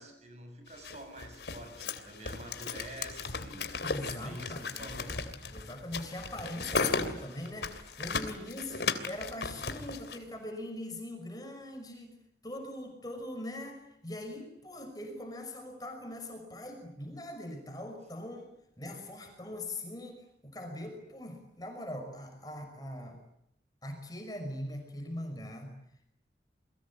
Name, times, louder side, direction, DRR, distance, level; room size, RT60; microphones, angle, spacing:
voice 1, 0.0-3.8 4.1-5.2, right 1 dB, 40° right, 5 dB, 8.0 m, -47 dB
sound 1, 0.8-10.2, left 4 dB, 75° left, 3.1 m, -36 dB
voice 2, 3.8-5.0 5.5-23.2 23.8-25.7, left 1 dB, 20° left, 4 dB, 5.8 m, -42 dB
29.0 x 22.5 x 8.6 m, 0.76 s
head